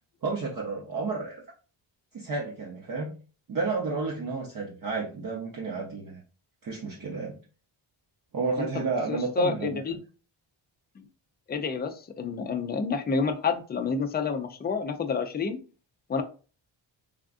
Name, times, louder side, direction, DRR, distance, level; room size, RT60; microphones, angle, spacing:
voice 1, 0.2-1.4 2.1-3.1 3.5-6.2 6.6-7.4 8.3-9.8, right 4 dB, 45° right, -2 dB, 0.7 m, -31 dB
voice 2, 8.6-10.0 11.0-11.1 11.5-15.6 16.1-16.2, left 5 dB, 25° left, 6 dB, 0.3 m, -29 dB
3.4 x 2.4 x 2.4 m, 0.36 s
cardioid pair, 90°, 49 cm